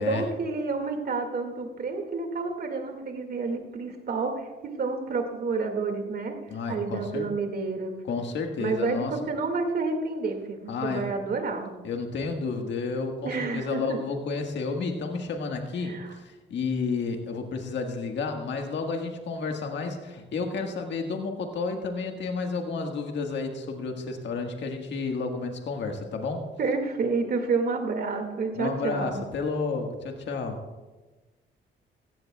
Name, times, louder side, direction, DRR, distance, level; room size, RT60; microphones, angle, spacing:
voice 1, 0.0-6.4 6.7-7.9 8.6-11.7 13.2-14.0 15.8-16.1 26.6-29.2, right 4 dB, 50° right, 4 dB, 2.2 m, -29 dB
voice 2, 6.5-7.3 8.1-9.2 10.7-11.2 11.8-26.5 28.5-30.6, left 4 dB, 65° left, 3 dB, 1.6 m, -31 dB
16.0 x 15.0 x 2.4 m, 1.2 s
cardioid pair, 90°, 20 cm